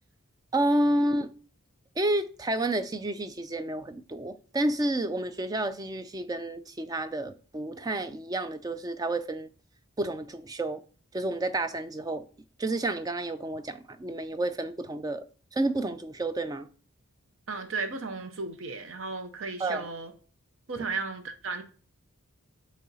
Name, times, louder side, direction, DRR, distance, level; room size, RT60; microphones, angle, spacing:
voice 1, 0.5-1.3 2.0-9.5 10.0-10.8 11.1-12.3 12.6-16.7 19.6-19.8, right 1 dB, 15° right, 0.3 m, -30 dB
voice 2, 17.5-20.1 20.7-21.6, right 4 dB, 60° right, 0.6 m, -34 dB
8.5 x 3.1 x 4.0 m
head